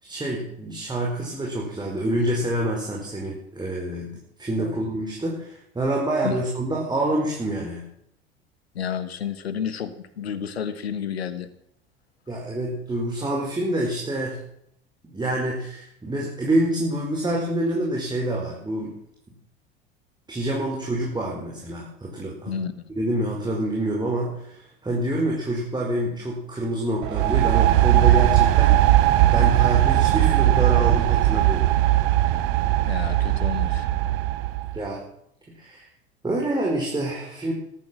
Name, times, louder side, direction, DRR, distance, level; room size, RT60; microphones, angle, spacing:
voice 1, 0.0-7.9 12.3-14.4 15.0-18.9 20.3-22.5 22.9-28.9 29.3-31.7 34.7-35.0 35.5-35.9 36.2-37.5, right 1 dB, 15° right, -2 dB, 5.1 m, -27 dB
voice 2, 8.7-11.5 22.5-22.7 32.9-33.9, left 7 dB, 85° left, 12 dB, 1.3 m, -30 dB
sound 1, 27.0-34.8, right 14 dB, 65° right, 1.3 m, -19 dB
13.5 x 13.0 x 7.6 m, 0.73 s
hypercardioid pair, 80°, 30 cm